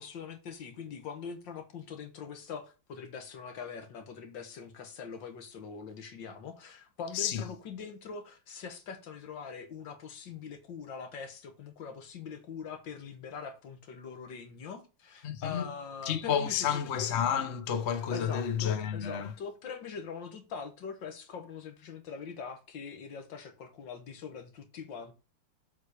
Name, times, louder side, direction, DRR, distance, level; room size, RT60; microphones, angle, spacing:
voice 1, 0.0-16.8 18.1-25.1, left 6 dB, 65° left, 1.9 m, -43 dB
voice 2, 15.2-15.7 16.1-19.3, left 8 dB, 50° left, 0.9 m, -30 dB
7.4 x 4.2 x 5.0 m
omnidirectional pair, 2.2 m